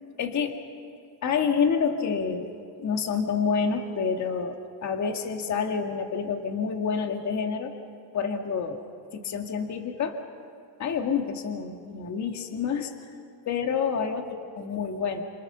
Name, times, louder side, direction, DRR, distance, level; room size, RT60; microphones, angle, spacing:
voice 1, 0.2-0.6 0.8-0.9 1.2-2.5 2.8-7.7 8.1-8.8 9.1-10.2 10.8-12.9 13.5-15.2, left 6 dB, 35° left, 4 dB, 2.1 m, -28 dB
28.0 x 26.5 x 6.9 m, 2.3 s
cardioid pair, 130°, 50 cm